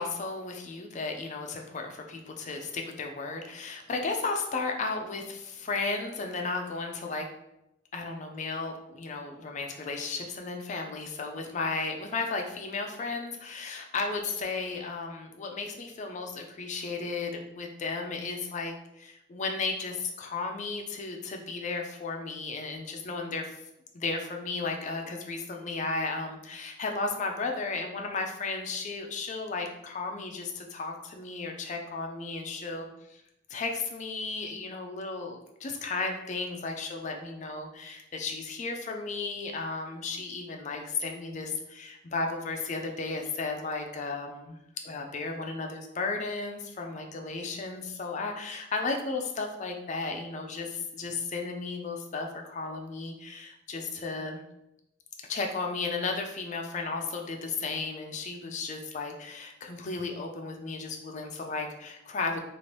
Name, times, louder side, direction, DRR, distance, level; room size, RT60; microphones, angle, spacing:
voice 1, 0.0-7.3 7.9-23.6 23.9-33.2 33.5-54.4 55.3-62.4, left 3 dB, 40° left, 2 dB, 0.4 m, -34 dB
2.8 x 2.5 x 3.2 m, 0.85 s
head